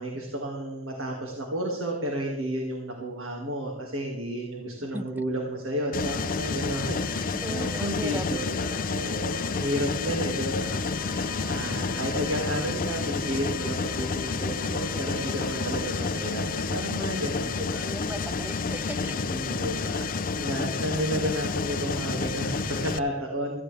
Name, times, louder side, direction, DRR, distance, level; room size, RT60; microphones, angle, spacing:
voice 1, 0.0-17.9 19.0-23.6, equal, 70° right, 0 dB, 2.2 m, -32 dB
Mechanisms, 5.9-23.0, left 4 dB, 40° left, 0.5 m, -30 dB
voice 2, 7.4-8.3 17.8-19.2, equal, 10° right, 11 dB, 0.6 m, -37 dB
Bowed string instrument, 10.6-16.1, equal, 25° right, 3.1 m, -45 dB
17.0 x 14.5 x 3.4 m, 0.93 s
head